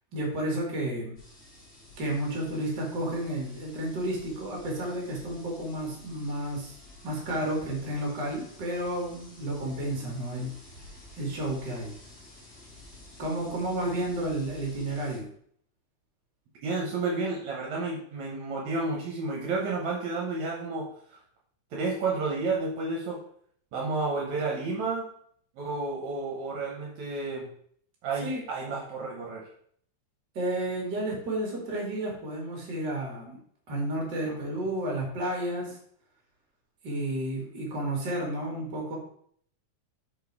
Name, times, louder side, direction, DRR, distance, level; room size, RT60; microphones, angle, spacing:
voice 1, 0.1-1.2 2.0-6.7 7.0-10.5 11.2-11.9 13.2-15.3 28.2-28.4 30.3-33.4 33.7-35.8 36.8-39.0, right 1 dB, 40° right, -1 dB, 2.3 m, -31 dB
sound 1, 1.2-15.2, left 2 dB, 30° left, 2.3 m, -51 dB
voice 2, 16.6-21.2 21.7-23.2 23.7-25.1 25.6-27.5 28.0-29.5 34.3-34.4, right 3 dB, 70° right, -2 dB, 2.3 m, -31 dB
5.4 x 4.5 x 4.6 m, 0.62 s
omnidirectional pair, 3.5 m